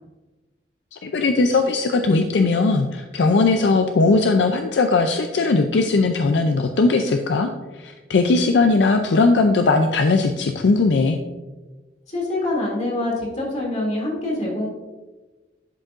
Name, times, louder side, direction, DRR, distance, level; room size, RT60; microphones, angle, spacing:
voice 1, 0.9-7.5 7.8-11.2, left 3 dB, 75° left, 6 dB, 0.4 m, -19 dB
voice 2, 12.1-14.7, left 2 dB, 40° left, -3 dB, 2.4 m, -25 dB
11.0 x 5.3 x 2.5 m, 1.2 s
head